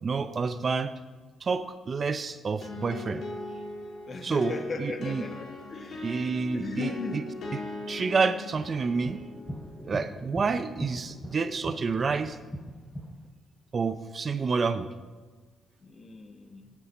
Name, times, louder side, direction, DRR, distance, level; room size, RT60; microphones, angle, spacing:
voice 1, 0.0-1.0 1.4-3.2 4.2-5.2 6.0-7.2 7.5-7.6 7.9-9.2 9.8-12.4 13.7-14.9, right 4 dB, 40° right, 12 dB, 0.6 m, -29 dB
sound 1, 2.6-12.2, left 2 dB, 60° left, 2.2 m, -41 dB
voice 2, 4.1-7.3 15.8-16.7, left 4 dB, 40° left, 6 dB, 1.3 m, -38 dB
sound 2, 8.6-13.3, equal, 10° left, 1.1 m, -40 dB
12.5 x 8.4 x 4.3 m, 1.3 s
cardioid pair, 90°, 0 cm